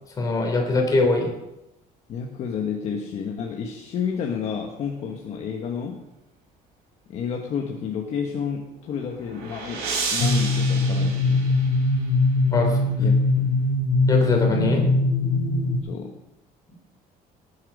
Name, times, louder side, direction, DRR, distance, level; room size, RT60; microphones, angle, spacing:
voice 1, 0.2-1.3 12.5-12.9 14.1-14.8, left 3 dB, 20° left, 1 dB, 3.1 m, -22 dB
voice 2, 2.1-6.0 7.1-11.6 13.0-13.6 15.8-16.1, left 6 dB, 45° left, 2 dB, 1.3 m, -30 dB
sound 1, 8.8-12.1, right 4 dB, 85° right, 4.9 m, -32 dB
sound 2, 10.2-15.8, left 2 dB, 65° left, 2.7 m, -21 dB
19.0 x 8.6 x 5.4 m, 0.93 s
cardioid pair, 180°, 16 cm